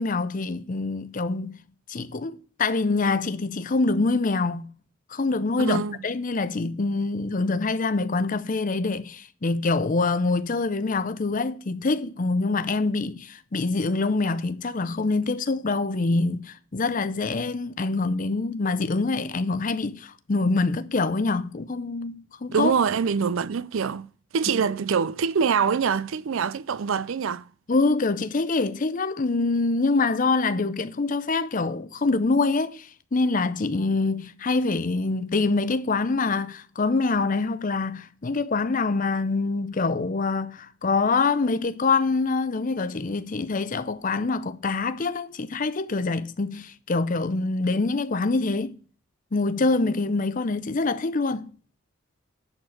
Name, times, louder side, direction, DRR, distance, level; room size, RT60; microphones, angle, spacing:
voice 1, 0.0-1.6 1.9-4.7 5.1-22.7 27.7-48.7 49.3-51.5, left 3 dB, 35° left, 0.5 m, -25 dB
voice 2, 5.6-6.0 22.5-24.1 24.3-27.4, right 6 dB, 65° right, 0.4 m, -24 dB
10.5 x 4.4 x 6.4 m
head